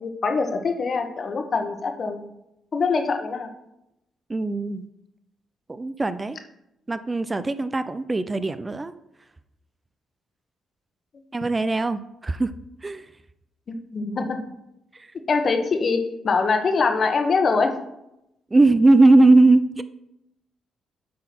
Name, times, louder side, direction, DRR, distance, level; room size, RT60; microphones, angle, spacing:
voice 1, 0.0-2.2 2.7-3.5 13.7-14.4 15.3-17.7, left 4 dB, 50° left, 5 dB, 1.3 m, -23 dB
voice 2, 4.3-4.9 5.7-6.4 6.9-8.9 11.3-12.5 12.8-13.0 18.5-19.8, right 2 dB, 25° right, 12 dB, 0.5 m, -19 dB
8.5 x 4.0 x 5.9 m, 0.85 s
supercardioid pair, 60°, 0 cm